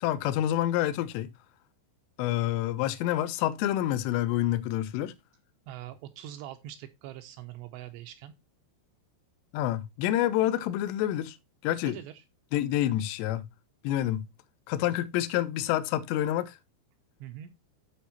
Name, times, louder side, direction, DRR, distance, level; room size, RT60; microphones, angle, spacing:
voice 1, 0.0-1.3 2.2-5.1 9.5-11.4 11.6-12.0 12.5-13.5 13.8-14.3 14.7-16.6, left 13 dB, 80° left, 2.8 m, -28 dB
voice 2, 5.7-8.3 11.8-12.2 17.2-17.5, right 12 dB, 80° right, 2.7 m, -43 dB
13.0 x 4.4 x 2.8 m
omnidirectional pair, 5.3 m